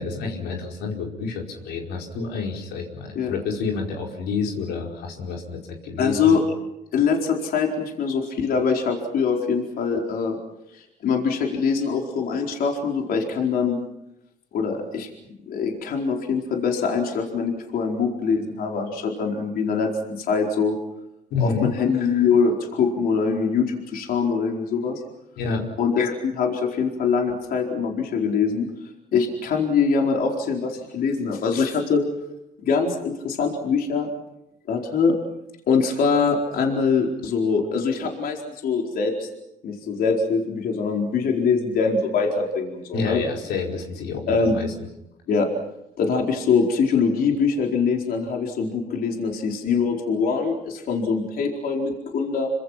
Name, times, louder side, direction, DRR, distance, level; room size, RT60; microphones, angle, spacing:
voice 1, 0.0-6.3 21.3-21.7 25.4-25.7 42.9-44.7, left 4 dB, 80° left, 1 dB, 4.9 m, -28 dB
voice 2, 6.0-6.4 6.9-10.4 10.7-13.8 14.5-15.1 15.5-20.8 21.4-25.0 25.8-28.7 29.1-32.0 32.6-34.1 34.7-35.2 35.7-39.3 39.6-43.2 44.3-44.6 45.3-45.5 46.0-52.5, left 5 dB, 60° left, 1 dB, 4.5 m, -23 dB
28.5 x 25.5 x 6.0 m, 0.87 s
cardioid pair, 110°, 17 cm